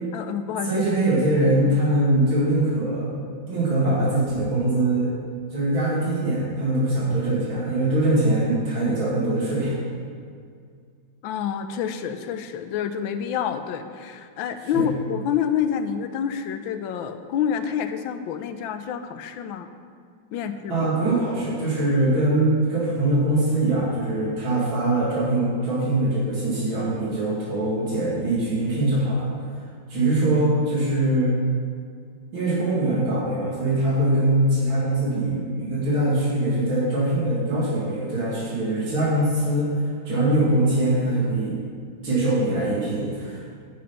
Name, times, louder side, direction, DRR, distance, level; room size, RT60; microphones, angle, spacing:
voice 1, 0.1-0.7 1.7-1.8 11.2-19.7 20.3-20.7, left 8 dB, 80° left, 9 dB, 1.4 m, -28 dB
voice 2, 0.6-3.1 3.5-5.1 5.5-9.7 14.7-14.9 20.7-29.2 29.9-31.3 32.3-39.7 40.0-41.6 42.0-43.5, right 1 dB, 80° right, -7 dB, 3.0 m, -22 dB
11.0 x 6.4 x 5.7 m, 2.1 s
omnidirectional pair, 2.2 m